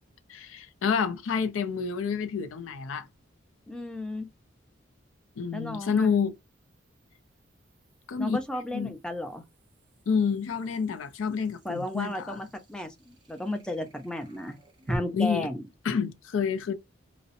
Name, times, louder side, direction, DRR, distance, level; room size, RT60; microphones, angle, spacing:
voice 1, 0.3-3.1 5.4-6.3 8.1-8.4 8.7-8.9 10.1-12.4 15.1-15.5 15.8-16.7, left 6 dB, 85° left, 0.4 m, -28 dB
sound 1, 1.3-1.4 4.8-15.0, right 1 dB, 20° right, 0.7 m, -46 dB
voice 2, 3.7-4.3 5.5-6.1 8.2-9.4 11.6-14.6 14.9-15.6, left 1 dB, 5° left, 0.3 m, -34 dB
2.7 x 2.0 x 2.4 m
head